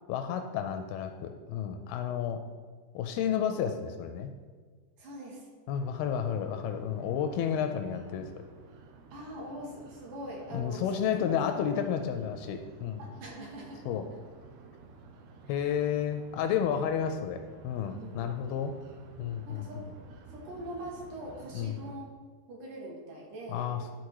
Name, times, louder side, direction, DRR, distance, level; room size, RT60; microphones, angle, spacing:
voice 1, 0.1-2.4 2.9-4.3 5.7-8.3 10.5-13.0 13.9-14.1 15.5-18.7 19.2-19.9 21.5-21.8 23.5-23.8, left 8 dB, 80° left, 7 dB, 2.3 m, -31 dB
voice 2, 5.0-5.5 9.1-10.9 11.2-11.3 13.0-13.9 15.5-15.8 17.9-18.3 19.5-19.8 20.3-22.1 22.5-23.7, right 1 dB, 65° right, -2 dB, 2.6 m, -42 dB
sound 1, 5.7-22.0, right 4 dB, 80° right, 2.8 m, -53 dB
12.0 x 4.2 x 4.7 m, 1.5 s
omnidirectional pair, 4.6 m